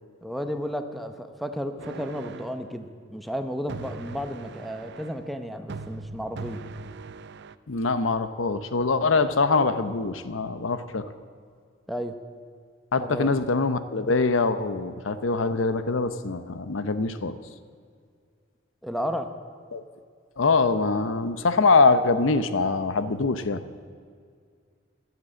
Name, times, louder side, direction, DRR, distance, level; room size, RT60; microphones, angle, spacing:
voice 1, 0.2-6.6 11.9-12.1 12.9-13.4 18.8-19.3, equal, ahead, 7 dB, 0.8 m, -33 dB
sound 1, 1.8-2.7 3.7-5.3 5.7-7.5, right 4 dB, 60° right, 0.5 m, -40 dB
voice 2, 7.7-11.0 12.9-17.3 19.7-19.8 20.4-23.6, left 3 dB, 75° left, 11 dB, 0.7 m, -23 dB
15.0 x 11.0 x 7.6 m, 2.1 s
head